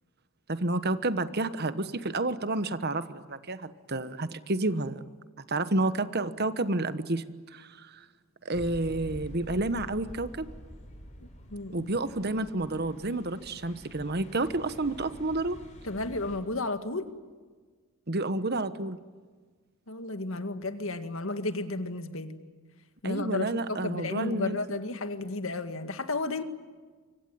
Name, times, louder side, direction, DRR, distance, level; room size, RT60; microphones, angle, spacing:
voice 1, 0.5-5.0 5.5-7.2 7.5-8.0 8.4-10.5 11.7-15.6 18.1-19.0 23.0-24.6, right 2 dB, 45° right, 12 dB, 1.2 m, -30 dB
sound 1, 8.5-16.4, equal, 35° left, 6.6 m, -47 dB
voice 2, 11.5-11.9 15.8-17.1 19.9-22.4 23.0-26.4, left 2 dB, 65° left, 9 dB, 2.0 m, -33 dB
25.0 x 25.0 x 9.4 m, 1.5 s
head